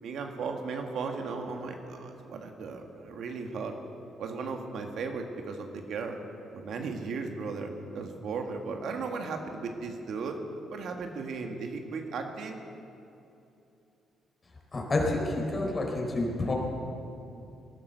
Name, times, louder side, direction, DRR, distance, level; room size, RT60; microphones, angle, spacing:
voice 1, 0.0-3.7 4.2-6.2 6.5-10.4 10.7-12.6, right 4 dB, 70° right, 4 dB, 1.7 m, -36 dB
voice 2, 14.7-16.5, left 2 dB, 30° left, 0 dB, 4.0 m, -29 dB
18.5 x 11.0 x 6.8 m, 2.8 s
cardioid pair, 90°, 0 cm